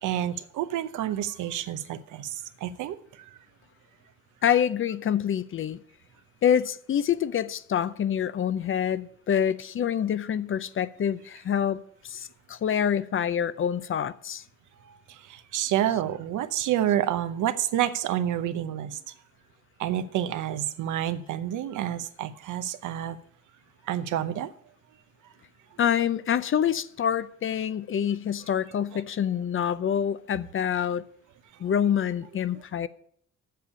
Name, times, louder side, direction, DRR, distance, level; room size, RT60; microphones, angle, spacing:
voice 1, 0.0-3.4 14.8-19.1 19.8-23.2 23.8-24.5 28.9-29.0, right 11 dB, 80° right, 0.8 m, -29 dB
voice 2, 4.4-5.8 6.4-14.4 25.8-31.0 31.6-32.9, left 9 dB, 45° left, 0.6 m, -26 dB
7.6 x 6.8 x 8.2 m
cardioid pair, 90°, 30 cm